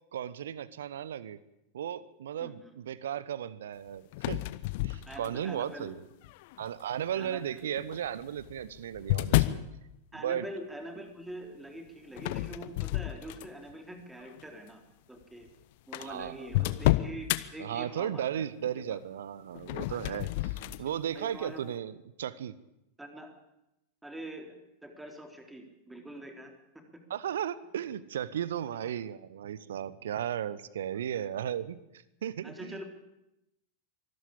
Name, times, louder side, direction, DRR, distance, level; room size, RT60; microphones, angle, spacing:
voice 1, 0.1-1.4 1.7-4.4 4.8-6.1 6.6-9.6 10.2-10.5 16.0-16.4 17.6-22.6 27.1-31.8 32.2-32.8, right 10 dB, 60° right, 19 dB, 1.0 m, -35 dB
voice 2, 2.4-2.7 5.1-6.0 7.1-7.7 10.1-14.8 15.1-15.5 15.9-18.5 18.9-19.0 19.9-20.2 20.7-20.8 21.1-21.7 23.0-23.3 24.0-24.6 24.8-26.8 28.7-28.9 32.4-32.8, right 1 dB, 5° right, 4 dB, 3.6 m, -44 dB
sound 1, 4.1-5.6 6.2-6.7 7.8-9.7 12.2-13.7 14.2-14.4 15.2-15.3 15.5-15.6 15.9-17.4 19.6-20.9, left 19 dB, 50° left, 1.0 m, -30 dB
24.0 x 13.5 x 8.7 m, 0.89 s
figure-of-eight pair, 90°, 0 cm